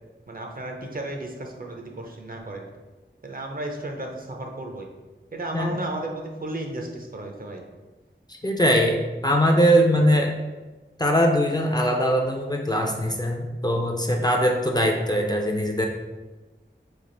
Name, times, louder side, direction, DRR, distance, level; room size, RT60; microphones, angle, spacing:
voice 1, 0.3-2.7 3.2-4.9 5.3-7.7, right 1 dB, 50° right, 2 dB, 0.6 m, -34 dB
voice 2, 8.3-10.4 11.0-15.9, equal, 20° left, 1 dB, 0.4 m, -21 dB
3.3 x 2.4 x 3.8 m, 1.2 s
wide cardioid pair, 60°, 20 cm